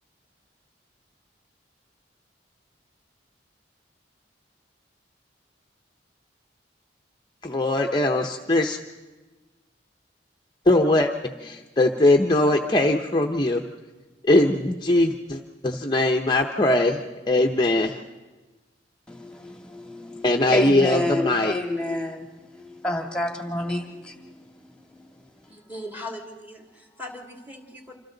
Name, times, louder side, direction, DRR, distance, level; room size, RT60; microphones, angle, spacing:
voice 1, 7.4-8.8 10.7-11.1 11.4-13.6 14.2-18.0 20.2-21.5, left 1 dB, 25° left, 2 dB, 0.8 m, -21 dB
voice 2, 19.1-25.5, left 1 dB, 5° left, 2 dB, 1.9 m, -30 dB
voice 3, 25.5-28.0, left 1 dB, 10° right, 1 dB, 2.6 m, -39 dB
27.0 x 26.0 x 3.9 m, 1.2 s
head